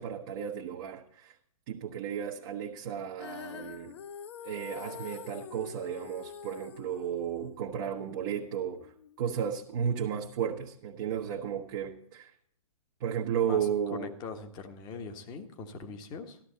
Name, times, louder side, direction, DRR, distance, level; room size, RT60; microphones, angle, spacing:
voice 1, 0.0-1.4 1.7-4.0 4.4-8.9 9.2-12.3 13.0-14.1, right 8 dB, 35° right, -1 dB, 1.1 m, -34 dB
Female singing, 3.2-9.4, left 8 dB, 50° left, 0.9 m, -46 dB
voice 2, 13.5-16.4, left 4 dB, 25° left, 6 dB, 1.4 m, -42 dB
13.0 x 12.5 x 4.1 m, 0.66 s
figure-of-eight pair, 125°, 18 cm